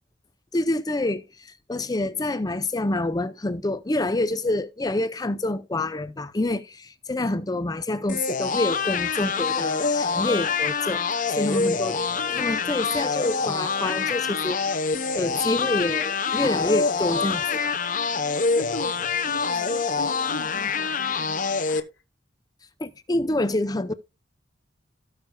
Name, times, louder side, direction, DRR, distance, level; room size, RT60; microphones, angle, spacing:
voice 1, 0.5-12.0 12.3-14.8 15.1-17.8 22.8-23.9, left 2 dB, 20° left, 0.5 m, -27 dB
sound 1, 8.1-21.8, left 5 dB, 45° left, 0.9 m, -26 dB
voice 2, 11.4-12.8 18.1-21.9, left 2 dB, 80° left, 1.5 m, -40 dB
17.0 x 6.6 x 2.3 m
head